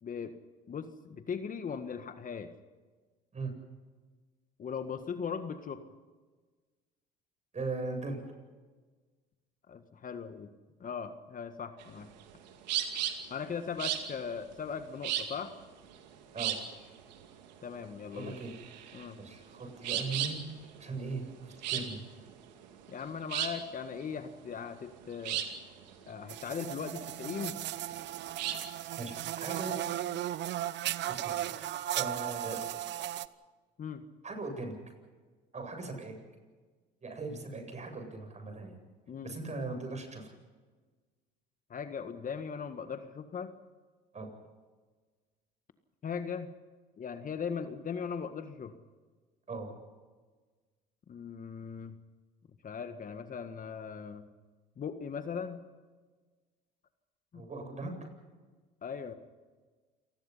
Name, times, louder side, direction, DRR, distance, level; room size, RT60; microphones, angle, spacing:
voice 1, 0.0-0.4 0.7-2.5 4.6-5.9 9.7-10.5 10.8-12.1 13.3-15.5 17.6-18.4 18.9-19.2 22.9-25.4 26.1-27.6 33.8-34.1 39.1-39.4 41.7-43.5 46.0-46.5 47.0-48.8 51.1-52.0 52.6-54.3 54.8-55.6 57.3-57.5 58.8-59.1, left 6 dB, 40° left, 9 dB, 1.7 m, -39 dB
voice 2, 7.5-8.2 16.3-16.6 18.1-18.5 19.2-20.4 20.8-22.0 29.0-29.8 31.1-31.7 31.9-32.6 34.2-34.8 35.5-36.1 37.0-38.8 39.2-40.3 44.1-44.3 49.5-49.7 57.3-57.9, right 3 dB, 35° right, 5 dB, 8.0 m, -39 dB
sound 1, 11.8-28.7, right 10 dB, 90° right, 2.4 m, -37 dB
sound 2, 26.3-33.3, right 13 dB, 55° right, 0.9 m, -36 dB
28.5 x 19.5 x 5.7 m, 1.4 s
hypercardioid pair, 75°, 21 cm